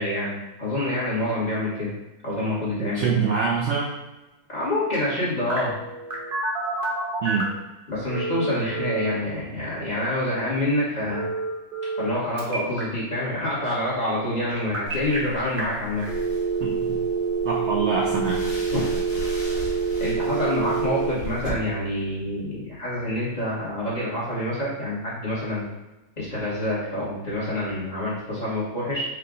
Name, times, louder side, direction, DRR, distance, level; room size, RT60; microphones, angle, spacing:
voice 1, 0.0-1.9 2.2-3.2 4.5-5.7 7.9-11.3 12.0-16.0 18.7-18.8 20.0-25.7 26.2-29.0, left 1 dB, 30° left, -8 dB, 1.2 m, -27 dB
voice 2, 2.8-3.9 7.2-7.5 16.6-17.0 17.4-18.4, right 6 dB, 85° right, -2 dB, 0.6 m, -25 dB
Telephone, 5.5-7.6 8.1-9.1 11.1-12.1 12.4-12.8 14.5-15.2 15.6-15.7 16.0-21.1, right 5 dB, 40° right, 1.0 m, -27 dB
sound 1, 14.9-21.5, equal, 70° left, 1.6 m, -38 dB
4.7 x 2.4 x 3.8 m, 1.0 s
omnidirectional pair, 1.7 m